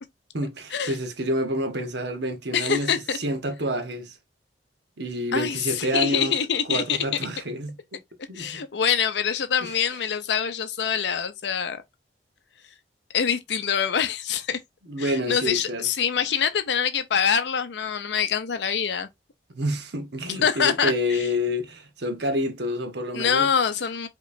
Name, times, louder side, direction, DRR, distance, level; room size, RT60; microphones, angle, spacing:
voice 1, 0.3-4.2 5.0-6.4 6.7-8.0 8.3-8.6 9.6-9.8 14.9-15.9 19.5-23.5, equal, 70° right, 1.0 m, -28 dB
voice 2, 2.5-3.2 5.3-7.0 8.4-11.8 13.1-14.6 15.0-19.1 20.4-21.3 23.1-24.1, left 7 dB, 70° left, 0.5 m, -25 dB
5.1 x 3.0 x 2.6 m
head